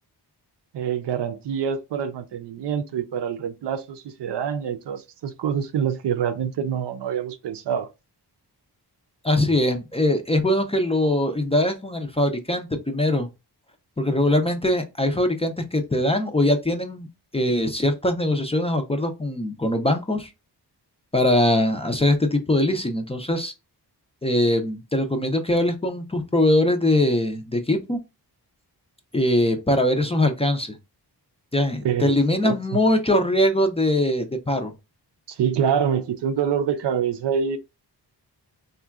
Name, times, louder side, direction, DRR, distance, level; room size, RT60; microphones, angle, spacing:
voice 1, 0.7-7.9 31.8-32.2 32.4-32.8 35.3-37.6, right 8 dB, 75° right, 0.5 m, -26 dB
voice 2, 9.2-13.3 14.0-17.1 17.3-20.3 21.1-23.5 24.2-28.0 29.1-30.7 31.5-34.7, left 1 dB, 15° left, 0.4 m, -22 dB
3.6 x 2.3 x 2.3 m
wide cardioid pair, 95°, 42 cm